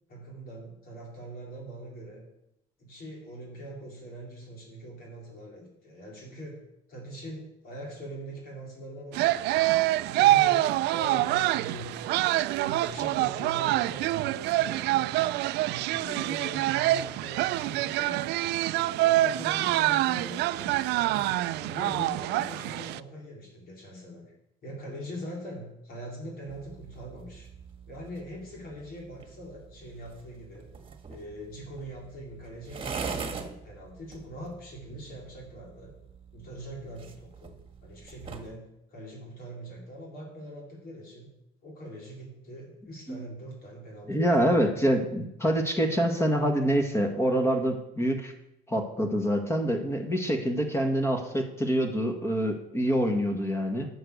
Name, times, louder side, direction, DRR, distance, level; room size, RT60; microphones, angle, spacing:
voice 1, 0.1-2.2 2.8-6.6 6.9-9.7 10.1-18.3 18.8-24.2 24.6-27.5 27.9-30.7 31.1-35.9 36.3-38.7 38.9-41.3 41.6-44.7, equal, 60° left, -2 dB, 4.1 m, -42 dB
sound 1, 9.1-23.0, right 16 dB, 85° right, 0.4 m, -26 dB
sound 2, 26.5-38.6, right 5 dB, 30° right, 1.5 m, -43 dB
voice 2, 44.1-48.3 48.7-53.9, equal, 15° left, 5 dB, 1.8 m, -26 dB
9.6 x 7.0 x 6.7 m, 0.83 s
cardioid pair, 110°, 17 cm